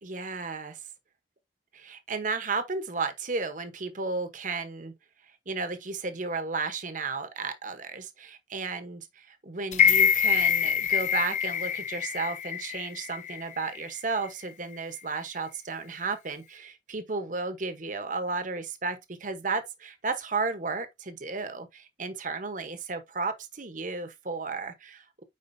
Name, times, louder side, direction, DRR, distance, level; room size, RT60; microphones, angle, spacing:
voice 1, 0.0-0.8 1.7-4.9 5.5-25.2, right 4 dB, 45° right, 1.0 m, -33 dB
sound 1, 9.7-13.8 14.2-14.3, left 8 dB, 40° left, 0.7 m, -25 dB
8.6 x 5.1 x 2.7 m
head